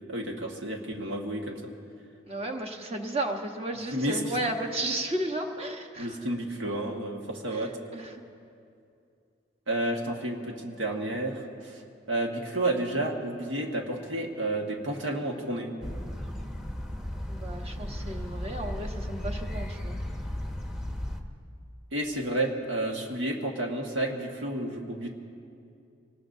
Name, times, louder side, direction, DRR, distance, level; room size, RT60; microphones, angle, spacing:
voice 1, 0.1-1.7 3.9-4.4 6.0-7.7 9.7-11.8 12.1-15.7 21.9-25.1, right 1 dB, 85° right, 1 dB, 1.6 m, -31 dB
voice 2, 2.3-6.2 7.5-8.2 17.3-20.0, right 1 dB, 30° right, 3 dB, 1.2 m, -33 dB
sound 1, 15.8-21.2, left 1 dB, 5° right, 0.9 m, -35 dB
24.5 x 19.5 x 2.7 m, 2.5 s
head